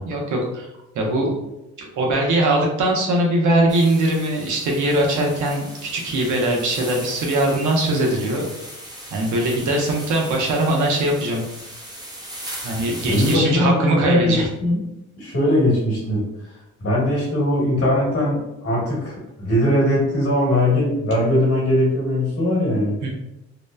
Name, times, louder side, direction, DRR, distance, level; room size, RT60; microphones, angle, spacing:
voice 1, 0.0-1.4 1.8-8.5 9.1-11.4 12.6-14.5 23.0-23.1, right 1 dB, 75° right, 0 dB, 0.8 m, -21 dB
sound 1, 3.7-13.4, right 1 dB, 15° right, 0.6 m, -38 dB
voice 2, 13.1-14.3 14.6-14.8 15.2-16.2 16.8-23.0, left 1 dB, 50° left, -4 dB, 1.2 m, -20 dB
2.9 x 2.0 x 2.3 m, 0.90 s
cardioid pair, 90°, 30 cm